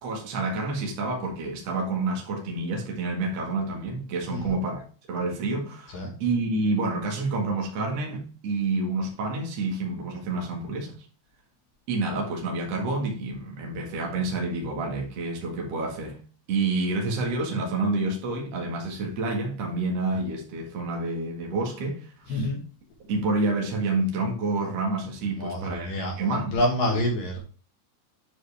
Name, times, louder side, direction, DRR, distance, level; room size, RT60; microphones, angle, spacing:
voice 1, 0.0-4.8 5.1-10.9 11.9-16.2 16.5-22.4 23.1-26.6, right 3 dB, 80° right, 1.4 m, -28 dB
voice 2, 22.3-22.6 25.3-27.4, left 1 dB, 65° left, 2.4 m, -27 dB
9.5 x 4.9 x 3.4 m
omnidirectional pair, 5.8 m